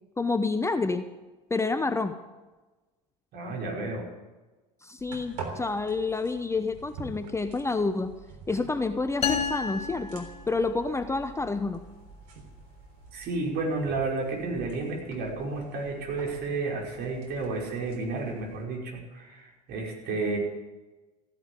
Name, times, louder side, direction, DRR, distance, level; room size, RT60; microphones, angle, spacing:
voice 1, 0.2-1.1 1.5-2.2 4.8-8.1 8.5-11.8, left 3 dB, 15° left, 10 dB, 0.9 m, -28 dB
voice 2, 3.3-4.1 13.1-20.4, right 3 dB, 50° right, 0 dB, 5.5 m, -31 dB
sound 1, 5.0-18.6, right 4 dB, 70° right, 3.5 m, -46 dB
sound 2, 9.2-11.0, left 6 dB, 30° left, 2.7 m, -31 dB
15.5 x 11.0 x 8.4 m, 1.2 s
hypercardioid pair, 80°, 21 cm